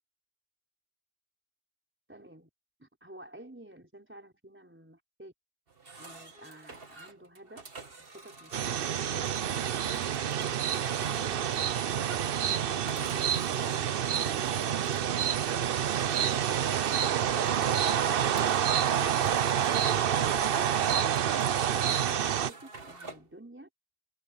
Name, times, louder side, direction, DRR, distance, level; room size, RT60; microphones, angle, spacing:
voice 1, 2.1-2.5 2.8-5.3 6.0-7.7 8.0-11.7 19.6-23.7, right 1 dB, 5° right, 4.6 m, -51 dB
sound 1, 5.7-23.3, right 3 dB, 35° right, 1.9 m, -49 dB
sound 2, 8.5-22.5, right 9 dB, 75° right, 0.5 m, -28 dB
omnidirectional pair, 1.8 m